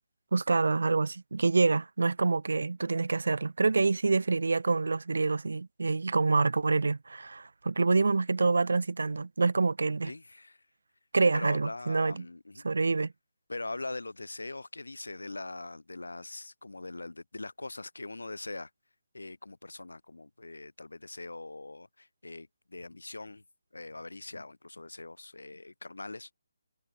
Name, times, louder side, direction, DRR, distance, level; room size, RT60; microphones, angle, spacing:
voice 1, 0.3-10.1 11.1-12.2 12.6-13.1, right 3 dB, 75° right, 1.1 m, -27 dB
voice 2, 10.0-10.6 11.3-12.6 13.5-18.7 19.1-23.4 23.7-26.3, left 2 dB, 90° left, 3.5 m, -42 dB
figure-of-eight pair, 155°, 0 cm